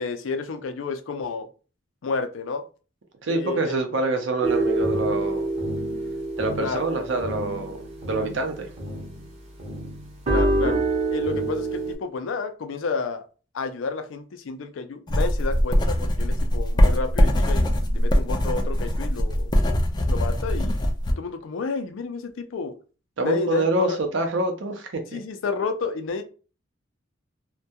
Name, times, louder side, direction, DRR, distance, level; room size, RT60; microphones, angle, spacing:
voice 1, 0.0-1.5 2.0-2.6 3.3-3.8 6.6-6.9 10.3-10.8 11.1-13.2 13.5-19.5 20.1-20.8 21.2-22.7 23.2-24.0 25.1-26.2, left 4 dB, 85° left, 0.4 m, -30 dB
voice 2, 3.2-5.5 6.4-8.7 23.2-23.9 24.1-25.2, right 2 dB, 70° right, 0.6 m, -26 dB
sound 1, 4.4-9.3 9.6-11.9, right 2 dB, 35° right, 0.7 m, -26 dB
sound 2, 15.1-21.1, equal, 20° left, 0.3 m, -21 dB
2.2 x 2.2 x 2.7 m
head